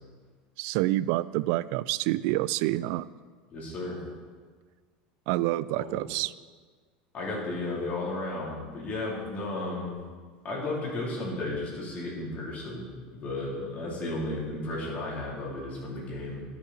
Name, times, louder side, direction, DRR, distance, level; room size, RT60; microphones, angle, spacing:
voice 1, 0.6-3.1 5.3-6.3, right 17 dB, 65° right, 18 dB, 0.3 m, -27 dB
voice 2, 3.5-4.0 5.8-6.0 7.1-10.0 10.4-12.9 13.1-16.5, left 2 dB, 35° left, -4 dB, 3.5 m, -34 dB
12.5 x 7.1 x 4.3 m, 1.5 s
supercardioid pair, 120°, 4 cm